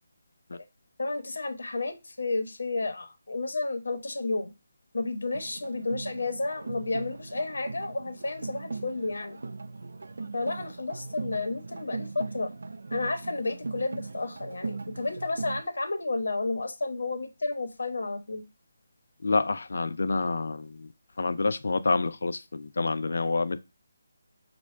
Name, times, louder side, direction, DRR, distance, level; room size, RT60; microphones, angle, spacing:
voice 1, 1.0-4.5 4.9-9.4 10.3-12.5 12.9-18.4, left 3 dB, 85° left, 0.9 m, -31 dB
sound 1, 5.3-15.6, right 3 dB, 70° right, 0.3 m, -39 dB
voice 2, 19.2-20.9 21.2-23.6, left 3 dB, 65° left, 0.4 m, -28 dB
6.0 x 2.1 x 3.2 m
hypercardioid pair, 175°, 0 cm